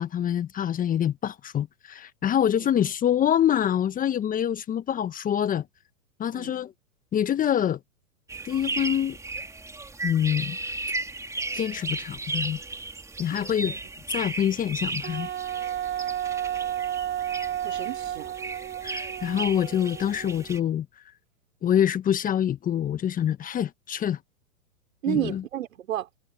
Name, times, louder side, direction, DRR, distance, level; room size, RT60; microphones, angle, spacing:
voice 1, 0.0-5.6 6.2-6.7 7.1-7.8 8.4-9.2 10.0-10.6 11.5-12.6 13.2-13.7 14.1-15.3 18.8-20.9 21.6-24.2 25.1-25.4, left 10 dB, 20° left, 1.4 m, -25 dB
sound 1, 8.3-20.6, right 3 dB, 5° right, 3.6 m, -35 dB
voice 2, 13.3-13.8 17.6-18.3 25.0-26.1, right 13 dB, 65° right, 5.1 m, -32 dB
Wind instrument woodwind instrument, 15.0-20.5, right 11 dB, 25° right, 2.4 m, -32 dB
hypercardioid pair, 115°, 43 cm